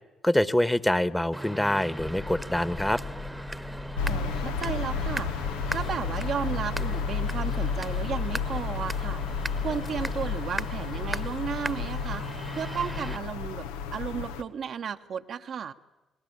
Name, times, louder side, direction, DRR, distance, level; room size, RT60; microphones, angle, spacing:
voice 1, 0.2-3.0, left 1 dB, 10° left, 17 dB, 1.3 m, -25 dB
sound 1, 1.3-13.2, right 1 dB, 10° right, 1.2 m, -38 dB
sound 2, 2.0-10.4, left 5 dB, 60° left, 1.8 m, -40 dB
sound 3, 4.0-14.4, left 5 dB, 75° left, 0.8 m, -32 dB
voice 2, 4.0-5.3 5.7-9.2 9.6-12.2 12.5-15.7, right 7 dB, 55° right, 6 dB, 1.0 m, -34 dB
29.5 x 20.5 x 8.7 m, 1.0 s
figure-of-eight pair, 40°, 0 cm